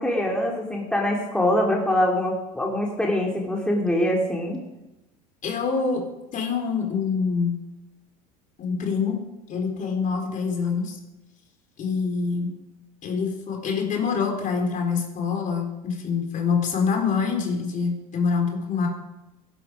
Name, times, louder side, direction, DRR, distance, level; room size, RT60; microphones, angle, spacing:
voice 1, 0.0-4.6, left 1 dB, 5° left, -1 dB, 3.3 m, -24 dB
voice 2, 5.4-6.0 6.3-7.6 8.6-9.2 9.5-11.0 11.8-12.5 13.0-18.9, left 5 dB, 40° left, 2 dB, 4.1 m, -25 dB
17.5 x 11.0 x 5.1 m, 0.99 s
hypercardioid pair, 80°, 20 cm